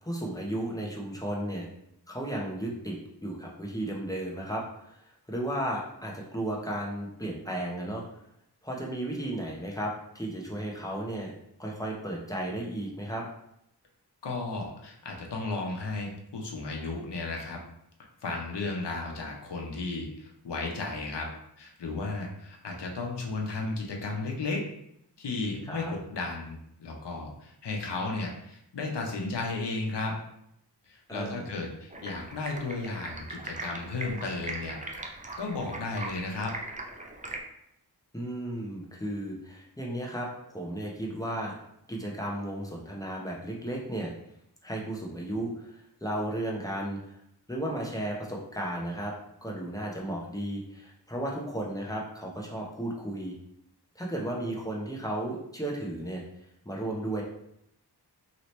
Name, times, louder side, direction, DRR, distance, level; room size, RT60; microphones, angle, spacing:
voice 1, 0.0-1.7 2.1-5.0 5.3-8.0 8.6-11.3 11.6-13.3 25.6-25.9 31.1-31.5 38.1-41.5 41.9-44.1 44.6-47.0 47.5-49.1 49.4-53.3 54.0-56.2 56.6-57.2, right 1 dB, 10° left, -2 dB, 0.7 m, -34 dB
voice 2, 14.2-17.6 18.2-21.3 21.6-24.6 25.2-30.1 30.9-34.8 35.4-36.6, left 3 dB, 80° left, 0 dB, 0.8 m, -34 dB
Stream, 31.9-37.4, right 2 dB, 20° right, 0.4 m, -40 dB
2.9 x 2.8 x 3.1 m, 0.77 s
wide cardioid pair, 70°, 41 cm